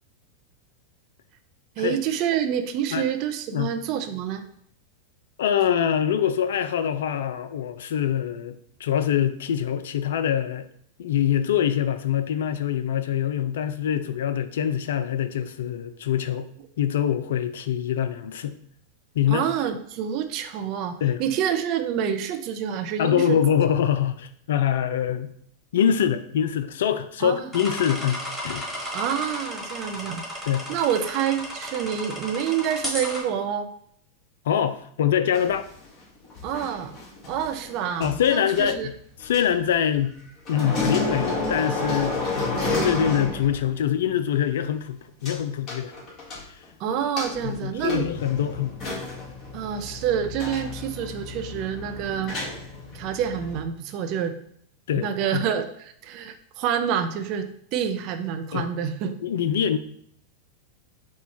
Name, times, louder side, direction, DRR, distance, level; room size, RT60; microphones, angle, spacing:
voice 1, 1.8-4.4 19.3-23.4 27.2-27.5 28.9-30.2 30.7-33.7 36.4-36.9 37.3-38.9 46.8-48.1 49.5-52.4 52.9-54.3 54.9-55.7 56.0-57.5 57.7-59.2, right 8 dB, 50° right, 8 dB, 0.5 m, -27 dB
voice 2, 5.4-10.7 11.0-16.5 16.8-18.6 19.1-19.5 21.0-21.2 23.0-25.3 25.7-28.7 30.5-30.7 34.5-35.7 38.0-38.9 39.2-40.2 40.5-45.9 46.4-46.6 47.4-48.8 54.9-55.4 58.5-58.7 59.2-59.8, left 9 dB, 70° left, 11 dB, 0.3 m, -24 dB
sound 1, 27.5-33.2, equal, 5° left, 1.6 m, -34 dB
sound 2, 35.3-40.2 40.5-43.8 44.1-44.2 45.3-45.4 45.7-46.7 47.2-53.6, left 2 dB, 40° left, 1.6 m, -31 dB
4.2 x 2.3 x 4.3 m, 0.67 s
hypercardioid pair, 95°, 0 cm